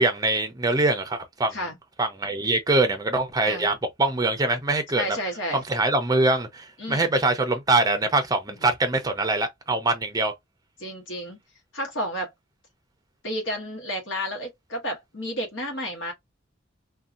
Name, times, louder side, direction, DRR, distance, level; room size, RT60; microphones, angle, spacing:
voice 1, 0.0-1.6 2.0-5.0 5.5-10.3, right 2 dB, 20° right, 0.5 m, -23 dB
voice 2, 5.0-5.6 6.8-7.1 8.6-8.7 10.8-11.4 11.7-12.3 13.2-16.1, equal, 70° left, 1.0 m, -31 dB
2.7 x 2.2 x 2.4 m
head